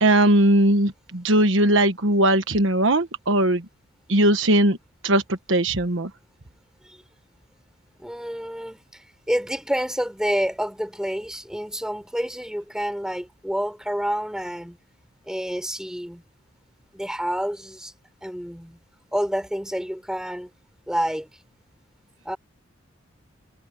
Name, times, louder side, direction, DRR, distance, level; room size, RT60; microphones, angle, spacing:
voice 1, 0.0-3.6 4.1-4.8 5.0-5.2 5.5-6.1, right 1 dB, 65° right, 1.4 m, -19 dB
voice 2, 8.0-14.8 15.3-16.2 16.9-17.9 18.2-18.8 19.1-20.5 20.9-21.3 22.2-22.4, equal, 5° right, 6.2 m, -28 dB
head